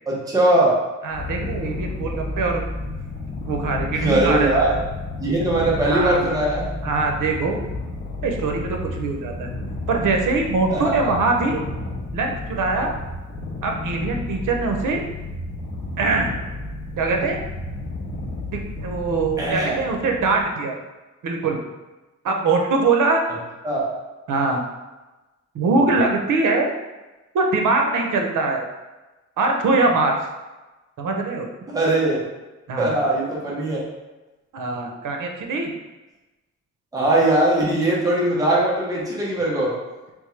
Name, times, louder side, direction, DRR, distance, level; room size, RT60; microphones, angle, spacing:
voice 1, 0.1-0.7 4.0-4.7 5.2-6.7 10.7-11.2 19.4-19.8 23.6-23.9 31.7-32.2 32.8-33.8 36.9-39.7, right 1 dB, 10° right, -6 dB, 0.9 m, -20 dB
voice 2, 1.0-2.6 3.4-4.8 5.8-6.3 6.8-7.6 8.2-9.5 9.9-11.6 12.1-12.9 13.6-15.0 16.0-16.3 17.0-17.4 18.5-20.8 21.2-21.6 22.2-23.2 24.3-24.6 25.5-26.7 27.3-28.6 29.4-30.1 31.0-31.5 32.7-33.0 34.5-35.7, right 3 dB, 90° right, 2 dB, 0.7 m, -22 dB
Purr, 1.1-20.4, left 2 dB, 35° left, 1.1 m, -32 dB
3.5 x 3.5 x 3.2 m, 1.1 s
wide cardioid pair, 145°, 30 cm